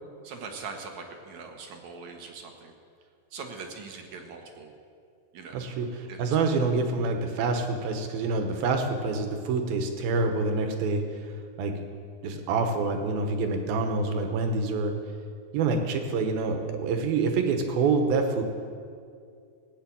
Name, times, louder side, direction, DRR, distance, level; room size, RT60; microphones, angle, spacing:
voice 1, 0.2-2.7 3.3-4.7 5.3-5.7 6.1-6.6, right 4 dB, 60° right, 3 dB, 2.3 m, -42 dB
voice 2, 5.5-11.0 11.6-11.8 12.2-15.0 15.5-18.4, right 4 dB, 90° right, 5 dB, 3.1 m, -26 dB
17.0 x 8.6 x 8.6 m, 2.3 s
omnidirectional pair, 4.1 m